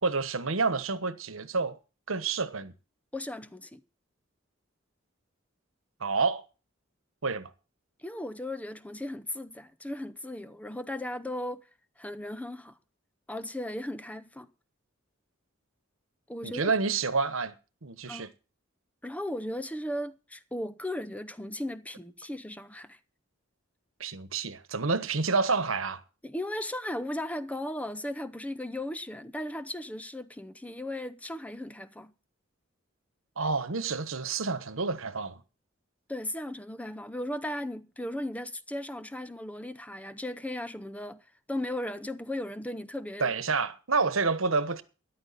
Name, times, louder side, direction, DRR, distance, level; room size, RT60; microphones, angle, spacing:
voice 1, 0.0-1.8 2.1-2.7 6.0-6.4 7.2-7.5 16.4-17.5 17.8-18.3 24.0-26.0 33.4-35.4 43.2-44.8, right 4 dB, 80° right, 1.2 m, -28 dB
voice 2, 3.1-3.8 8.0-11.6 12.0-12.8 13.3-14.5 16.3-16.7 18.1-18.3 19.0-23.0 26.2-32.1 36.1-43.3, left 1 dB, 5° left, 0.6 m, -36 dB
13.5 x 11.0 x 4.1 m
head